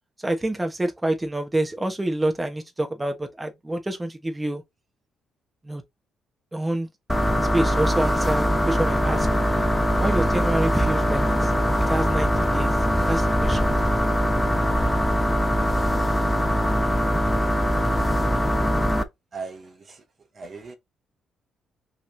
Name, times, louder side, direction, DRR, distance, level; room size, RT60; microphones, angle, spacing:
voice 1, 0.2-4.6 5.6-5.8 6.5-6.9 7.5-9.3 10.0-11.5 11.9-12.7 13.1-13.7, right 1 dB, 15° right, 1.2 m, -27 dB
sound 1, 7.1-19.0, equal, 5° left, 0.8 m, -22 dB
voice 2, 19.3-20.0 20.3-20.8, right 4 dB, 40° right, 1.1 m, -38 dB
5.6 x 3.2 x 2.7 m
cardioid pair, 90°, 0 cm